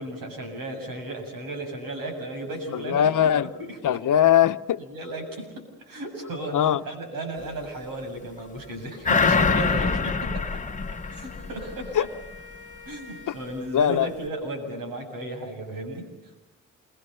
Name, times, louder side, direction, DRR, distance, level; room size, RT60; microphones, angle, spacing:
voice 1, 0.0-4.0 4.8-5.5 5.9-10.6 11.1-12.1 12.9-16.3, right 1 dB, 85° right, 7.6 m, -35 dB
voice 2, 2.7-3.5 3.8-4.8 6.5-6.8 9.5-9.6 11.9-12.1 13.3-13.4 13.7-14.1, left 10 dB, 65° left, 0.9 m, -21 dB
sound 1, 9.0-12.0 12.3-12.4, left 4 dB, 20° left, 1.0 m, -24 dB
Wind instrument woodwind instrument, 10.7-14.0, left 3 dB, 30° right, 3.6 m, -48 dB
28.0 x 23.0 x 7.0 m
cardioid pair, 110°, 34 cm